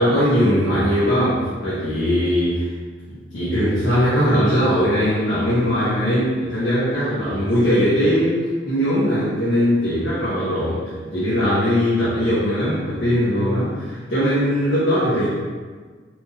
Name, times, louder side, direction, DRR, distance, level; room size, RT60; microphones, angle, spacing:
voice 1, 0.0-2.7 3.1-10.8 11.1-15.3, equal, 80° left, -12 dB, 1.4 m, -20 dB
4.8 x 3.4 x 2.6 m, 1.5 s
head